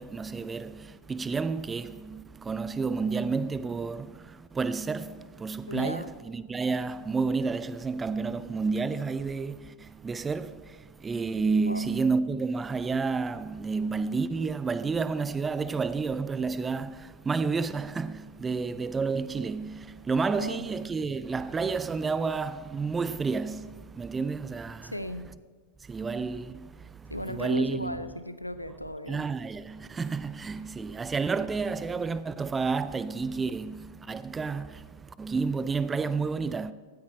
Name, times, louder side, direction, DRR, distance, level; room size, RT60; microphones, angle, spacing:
voice 1, 0.0-24.9 25.9-28.0 29.1-36.7, right 4 dB, 15° right, 0.4 m, -30 dB
voice 2, 5.7-6.1 11.7-11.9 20.3-20.6 24.8-25.3 27.1-29.3, left 1 dB, 90° left, 0.5 m, -36 dB
15.5 x 9.6 x 4.3 m
figure-of-eight pair, 90°, 0 cm